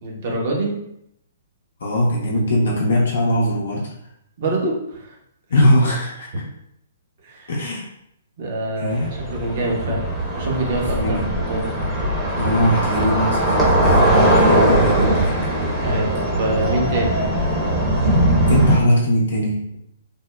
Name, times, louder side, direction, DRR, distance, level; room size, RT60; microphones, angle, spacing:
voice 1, 0.0-0.7 4.4-5.2 7.2-7.5 8.4-10.1 10.3-11.7 15.8-17.2, right 2 dB, 50° right, -1 dB, 0.9 m, -25 dB
voice 2, 1.8-3.9 5.5-6.3 7.5-7.9 8.8-9.1 10.9-11.3 12.4-15.4 18.5-19.6, equal, 65° left, -3 dB, 0.6 m, -20 dB
sound 1, 8.9-18.8, right 1 dB, 5° right, 0.8 m, -19 dB
3.4 x 2.0 x 2.2 m, 0.77 s
figure-of-eight pair, 125°, 0 cm